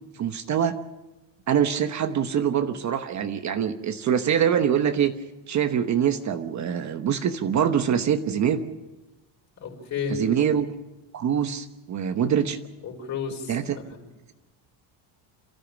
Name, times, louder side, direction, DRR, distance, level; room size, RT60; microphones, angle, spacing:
voice 1, 0.2-0.8 1.5-5.1 5.5-8.6 10.1-10.7 11.1-12.6 13.5-13.8, right 8 dB, 40° right, 8 dB, 1.1 m, -24 dB
voice 2, 9.6-10.2 12.8-13.5, left 6 dB, 40° left, 1 dB, 5.5 m, -31 dB
28.0 x 14.0 x 7.2 m, 1.1 s
cardioid pair, 160°, 46 cm